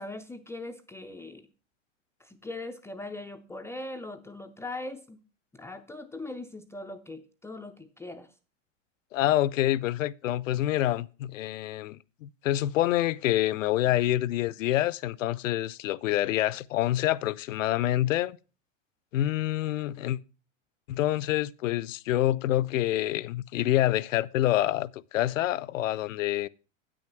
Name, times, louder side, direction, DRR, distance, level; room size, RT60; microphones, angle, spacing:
voice 1, 0.0-1.5 2.2-5.2 5.5-8.3, left 2 dB, 5° left, 0.4 m, -40 dB
voice 2, 9.1-18.4 19.1-20.2 20.9-26.5, left 14 dB, 75° left, 0.6 m, -27 dB
8.5 x 6.4 x 5.8 m
hypercardioid pair, 110°, 39 cm